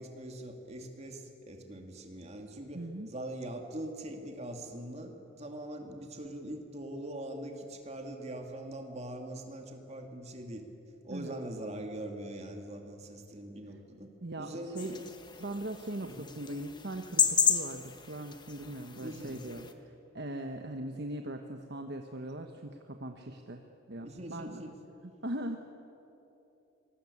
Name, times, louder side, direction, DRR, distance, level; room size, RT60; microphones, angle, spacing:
voice 1, 0.0-10.6 11.0-14.1 14.4-15.0 16.0-16.3 19.0-19.4 23.2-23.3 24.0-24.8, right 1 dB, 35° right, 3 dB, 2.7 m, -42 dB
voice 2, 2.7-3.1 11.1-11.3 14.2-14.9 15.4-23.6 23.9-24.6 25.2-25.6, right 1 dB, 60° right, 5 dB, 1.2 m, -40 dB
sound 1, 14.8-19.7, left 6 dB, 25° left, 1.4 m, -33 dB
25.5 x 20.0 x 8.6 m, 3.0 s
head